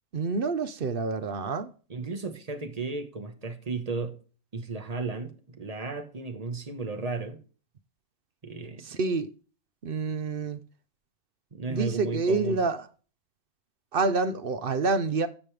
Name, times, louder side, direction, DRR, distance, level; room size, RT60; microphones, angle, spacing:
voice 1, 0.1-1.7 8.8-9.3 9.8-10.6 11.7-12.9 13.9-15.3, right 4 dB, 50° right, 0.8 m, -27 dB
voice 2, 1.9-4.2 4.5-7.4 8.4-8.8 11.5-12.6, right 3 dB, 30° right, 1.1 m, -34 dB
14.5 x 5.3 x 3.3 m
omnidirectional pair, 1.5 m